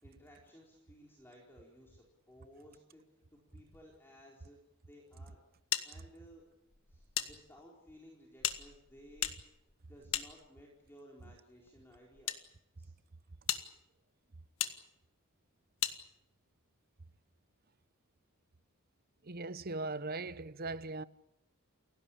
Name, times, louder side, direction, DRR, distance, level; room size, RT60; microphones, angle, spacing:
voice 1, 0.0-3.0 3.3-5.4 5.8-6.5 6.9-9.3 9.9-12.4 12.8-12.9, equal, 10° left, 4.5 m, -58 dB
sound 1, 5.7-7.3 7.6-7.7 8.4-10.9 11.7-12.4 13.0-13.1 13.5-13.6 14.6-14.7 15.8-16.0, left 11 dB, 70° left, 1.8 m, -37 dB
voice 2, 19.2-21.0, right 3 dB, 45° right, 0.9 m, -39 dB
29.5 x 17.0 x 8.7 m
head